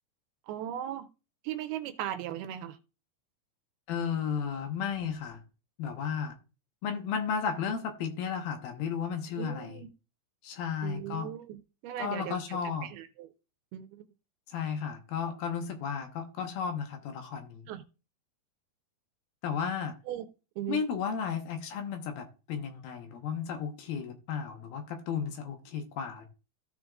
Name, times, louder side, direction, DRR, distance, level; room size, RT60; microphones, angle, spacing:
voice 1, 0.5-1.1 1.4-2.8 9.4-9.9 10.8-13.3 13.7-14.1 17.7-17.8 20.1-20.3 20.6-20.8, right 11 dB, 80° right, 2.5 m, -38 dB
voice 2, 3.9-5.4 5.8-6.3 6.8-9.8 10.4-11.3 12.0-12.9 14.5-17.7 19.4-20.0 20.7-26.3, left 7 dB, 70° left, 2.8 m, -34 dB
15.5 x 5.1 x 2.4 m
omnidirectional pair, 4.7 m